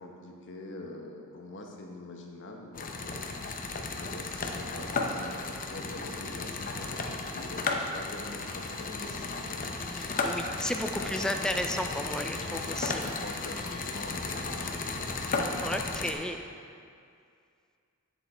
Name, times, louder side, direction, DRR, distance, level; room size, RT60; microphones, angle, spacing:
voice 1, 0.0-3.3 3.9-9.7 10.9-11.4 12.5-15.1, left 2 dB, 55° left, 1 dB, 1.1 m, -44 dB
sound 1, 2.7-16.1, left 3 dB, 40° left, 0.7 m, -34 dB
voice 2, 10.0-13.0 15.6-16.4, left 1 dB, 5° left, 5 dB, 0.3 m, -33 dB
9.5 x 7.1 x 4.4 m, 2.3 s
head